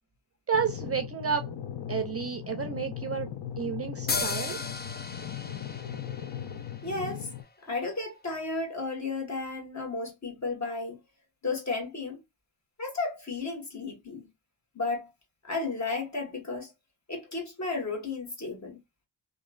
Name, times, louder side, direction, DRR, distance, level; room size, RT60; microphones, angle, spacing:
sound 1, 0.5-7.4, left 9 dB, 80° left, 0.6 m, -38 dB
voice 1, 0.5-1.5 1.9-3.3 3.6-4.6, right 6 dB, 35° right, 0.4 m, -31 dB
sound 2, 4.1-7.6, left 4 dB, 25° left, 0.4 m, -36 dB
voice 2, 6.8-7.3 7.6-11.0 11.4-12.2 12.8-14.3 14.7-15.1 15.4-16.7 17.1-18.8, left 3 dB, 40° left, 1.5 m, -33 dB
2.9 x 2.5 x 2.4 m
wide cardioid pair, 85°, 41 cm